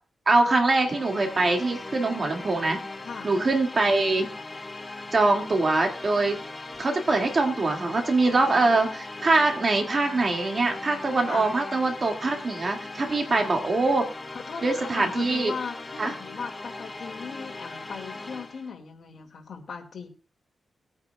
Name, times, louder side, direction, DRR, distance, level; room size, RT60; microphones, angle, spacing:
voice 1, 0.3-2.8 3.2-4.3 5.1-6.4 6.8-14.1 14.6-15.5 16.0-16.1, right 3 dB, 45° right, 2 dB, 2.2 m, -23 dB
sound 1, 0.7-18.7, left 2 dB, 25° left, 1.4 m, -39 dB
voice 2, 14.3-20.1, left 5 dB, 65° left, 3 dB, 2.3 m, -38 dB
20.5 x 9.5 x 2.4 m, 0.36 s
wide cardioid pair, 110°, 0 cm